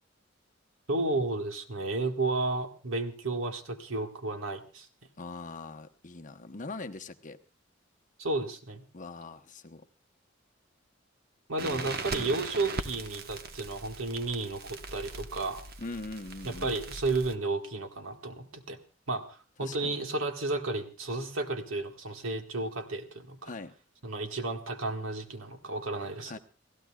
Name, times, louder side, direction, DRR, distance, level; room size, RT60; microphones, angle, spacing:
voice 1, 0.9-4.9 8.2-8.8 11.5-15.6 16.5-18.8 19.1-23.5 24.0-26.4, right 2 dB, 80° right, 5 dB, 1.7 m, -32 dB
voice 2, 5.2-7.4 8.9-9.8 11.6-12.4 15.8-16.7 19.6-20.0 23.4-23.7 26.3-26.4, left 3 dB, 40° left, 7 dB, 0.9 m, -42 dB
Crackle, 11.6-17.4, right 3 dB, 50° right, 1.1 m, -40 dB
30.0 x 15.5 x 2.3 m, 0.34 s
head